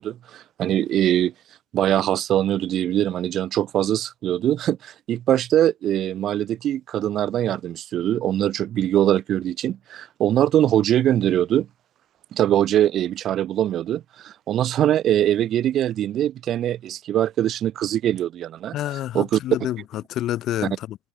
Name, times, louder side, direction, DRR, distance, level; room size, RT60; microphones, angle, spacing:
voice 1, 0.0-1.3 1.7-11.7 12.3-18.8 19.1-19.4, right 11 dB, 30° right, 0.5 m, -22 dB
voice 2, 18.7-21.0, left 13 dB, 30° left, 0.9 m, -28 dB
figure-of-eight pair, 90°, 0 cm